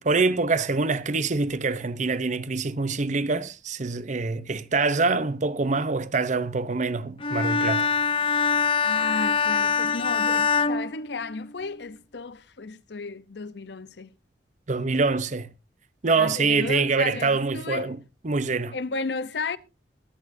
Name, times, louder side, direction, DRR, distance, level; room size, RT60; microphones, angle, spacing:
voice 1, 0.0-7.9 14.7-15.5 16.0-18.0 18.2-18.8, right 4 dB, 45° right, 0.7 m, -25 dB
Bowed string instrument, 7.2-11.7, left 5 dB, 30° left, 0.6 m, -24 dB
voice 2, 8.8-14.1 16.2-17.9 18.7-19.6, left 4 dB, 70° left, 0.7 m, -34 dB
22.5 x 8.6 x 2.6 m
head